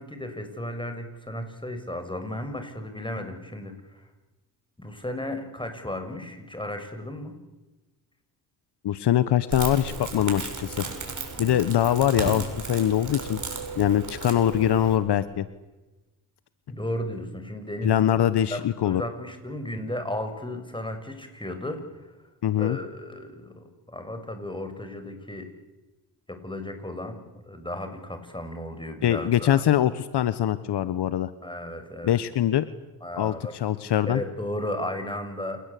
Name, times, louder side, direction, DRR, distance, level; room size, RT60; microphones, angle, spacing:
voice 1, 0.0-4.1 4.8-7.3 11.3-11.7 16.7-18.1 18.5-22.1 22.6-25.5 26.3-29.7 31.4-32.2 33.0-33.5 34.1-35.6, left 1 dB, 10° left, 7 dB, 6.7 m, -35 dB
voice 2, 8.8-10.8 11.4-13.4 13.8-15.5 17.8-19.0 22.4-22.8 29.0-31.3 32.0-32.6 33.1-34.2, left 11 dB, 65° left, 14 dB, 1.3 m, -23 dB
Crackle, 9.5-15.0, right 4 dB, 40° right, 7.6 m, -35 dB
28.0 x 20.0 x 8.5 m, 1.1 s
supercardioid pair, 60°, 44 cm